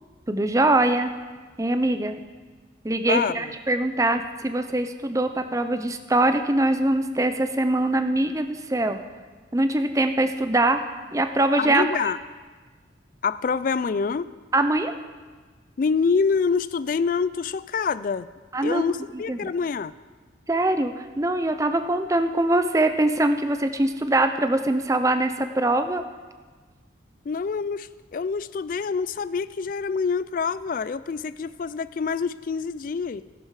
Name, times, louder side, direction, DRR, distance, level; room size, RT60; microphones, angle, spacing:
voice 1, 0.3-1.1 1.6-2.1 2.8-9.0 9.5-10.8 11.1-11.9 14.5-14.9 18.5-18.9 19.3-19.4 20.5-26.0, right 2 dB, 15° right, 8 dB, 0.5 m, -23 dB
voice 2, 3.1-3.5 11.6-12.2 13.2-14.3 15.8-18.3 18.6-19.9 27.3-33.2, left 5 dB, 45° left, 17 dB, 0.3 m, -26 dB
12.0 x 11.0 x 4.8 m, 1.4 s
head